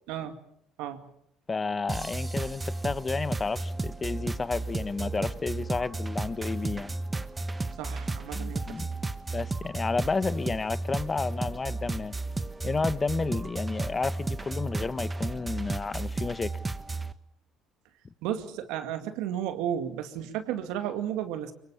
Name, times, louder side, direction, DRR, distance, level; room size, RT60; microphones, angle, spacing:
voice 1, 1.5-6.9 8.3-8.9 9.3-12.1 12.6-16.5, left 4 dB, 30° left, 1.0 m, -31 dB
sound 1, 1.9-17.1, right 2 dB, 20° right, 1.4 m, -33 dB
voice 2, 7.8-8.8 18.2-21.5, right 10 dB, 75° right, 2.2 m, -33 dB
24.0 x 23.0 x 7.1 m
hypercardioid pair, 65°, 0 cm